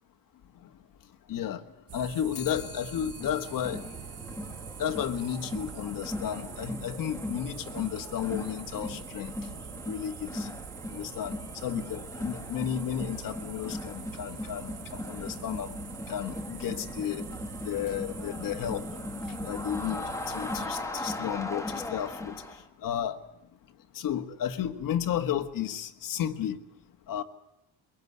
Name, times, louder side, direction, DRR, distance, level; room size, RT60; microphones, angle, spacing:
voice 1, 1.3-1.6 1.9-3.8 4.8-9.3 9.9-10.5 10.9-11.3 11.6-15.8 16.1-17.2 17.6-18.9 19.4-22.4 22.8-23.2 23.9-26.6 27.1-27.2, left 10 dB, 55° left, 7 dB, 1.7 m, -33 dB
sound 1, 1.9-20.7, right 9 dB, 40° right, 0.9 m, -44 dB
Clock, 2.3-11.7, left 11 dB, 70° left, 2.1 m, -53 dB
Crowd, 3.2-22.6, left 1 dB, 5° left, 2.2 m, -39 dB
22.5 x 22.0 x 9.7 m, 0.84 s
cardioid pair, 150°, 40 cm